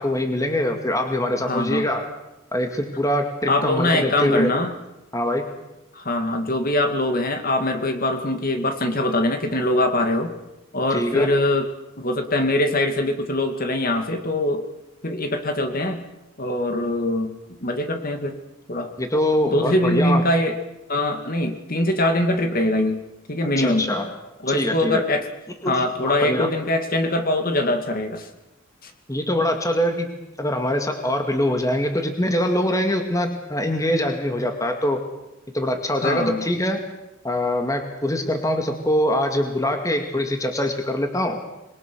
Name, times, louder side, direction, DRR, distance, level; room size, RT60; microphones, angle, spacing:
voice 1, 0.0-2.1 2.5-4.5 5.1-5.5 10.9-11.3 19.0-20.2 23.6-24.1 24.5-25.0 25.6-26.5 29.1-35.0 35.5-36.9 37.2-41.4, left 1 dB, 15° left, 5 dB, 2.1 m, -23 dB
voice 2, 1.5-1.9 3.5-4.7 5.9-10.3 10.7-11.7 12.0-14.6 15.0-16.0 16.4-17.4 17.6-18.4 18.7-18.9 19.5-20.6 20.9-23.9 24.4-25.3 25.7-28.3 28.8-28.9 36.0-36.5, left 1 dB, 40° left, 6 dB, 2.3 m, -23 dB
27.0 x 22.0 x 6.3 m, 0.97 s
head